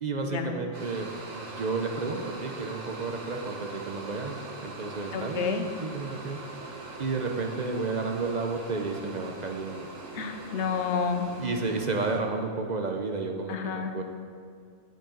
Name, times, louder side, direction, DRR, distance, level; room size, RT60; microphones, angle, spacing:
voice 1, 0.0-6.4 7.0-9.9 11.4-14.0, right 3 dB, 45° right, 3 dB, 0.7 m, -32 dB
sound 1, 0.7-12.2, right 2 dB, 85° right, 1.6 m, -42 dB
voice 2, 5.1-5.7 10.1-11.3 13.5-13.9, left 6 dB, 70° left, 6 dB, 1.0 m, -30 dB
10.5 x 8.9 x 3.9 m, 2.2 s
omnidirectional pair, 1.3 m